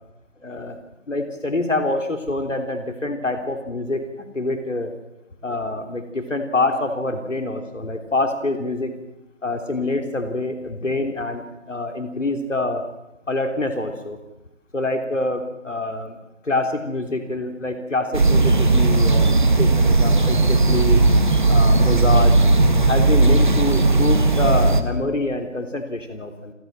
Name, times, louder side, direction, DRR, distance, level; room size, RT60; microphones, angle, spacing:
voice 1, 0.4-0.8 1.1-4.1 4.3-4.9 5.4-8.9 9.4-12.8 13.3-14.2 14.7-16.2 16.4-21.0 21.5-22.4 22.8-26.5, left 2 dB, 80° left, 5 dB, 3.4 m, -25 dB
sound 1, 18.1-24.8, right 3 dB, 40° right, 1.8 m, -16 dB
28.5 x 14.5 x 7.5 m, 0.96 s
figure-of-eight pair, 170°, 37 cm